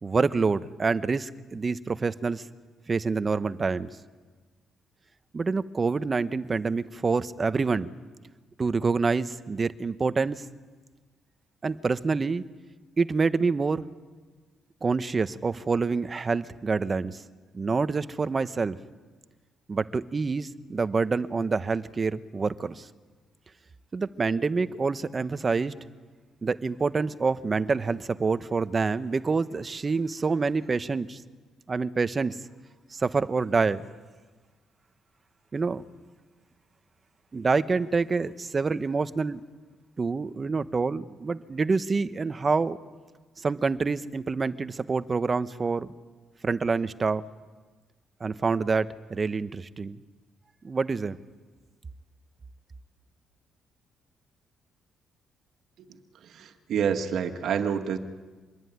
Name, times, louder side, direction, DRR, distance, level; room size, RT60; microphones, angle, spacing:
voice 1, 0.0-2.4 2.9-3.9 5.3-7.9 8.6-10.4 11.6-12.4 13.0-13.9 14.8-17.2 17.5-18.8 19.7-22.9 23.9-25.7 26.4-31.2 31.7-32.4 32.9-33.9 35.5-35.8 37.3-39.4 40.0-42.8 43.4-45.9 46.4-47.3 48.2-50.0 50.6-51.2, right 4 dB, 30° right, 13 dB, 1.1 m, -27 dB
voice 2, 56.2-58.0, right 7 dB, 70° right, 6 dB, 2.0 m, -28 dB
26.0 x 21.5 x 9.6 m, 1.4 s
cardioid pair, 90°, 0 cm